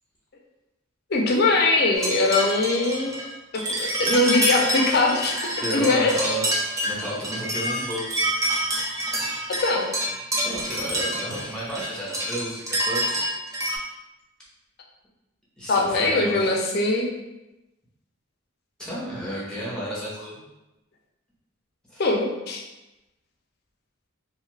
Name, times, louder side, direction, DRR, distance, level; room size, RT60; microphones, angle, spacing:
voice 1, 1.1-3.1 3.8-6.3 9.5-9.9 15.7-17.1 22.0-22.6, left 2 dB, 50° left, 0 dB, 0.5 m, -22 dB
sound 1, 1.9-13.8, right 1 dB, 15° right, 0.4 m, -27 dB
voice 2, 5.6-6.4 6.9-8.2 10.4-13.3 15.6-16.5 18.8-20.4 21.9-22.0, equal, 5° left, -8 dB, 0.8 m, -32 dB
2.7 x 2.4 x 3.1 m, 0.98 s
head